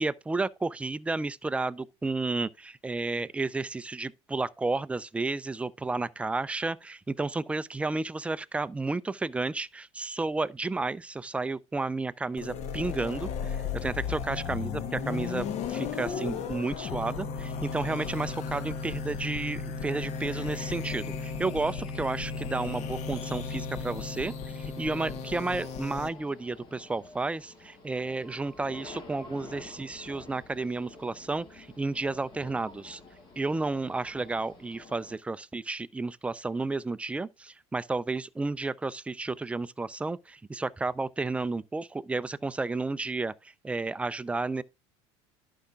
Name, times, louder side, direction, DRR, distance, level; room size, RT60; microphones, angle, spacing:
voice 1, 0.0-33.0 33.4-43.3 43.6-44.6, right 3 dB, 10° right, 0.3 m, -32 dB
sound 1, 12.4-26.1, left 6 dB, 50° left, 1.0 m, -35 dB
sound 2, 20.3-35.2, left 2 dB, 30° left, 2.2 m, -50 dB
11.5 x 5.5 x 2.3 m
supercardioid pair, 110°, 14 cm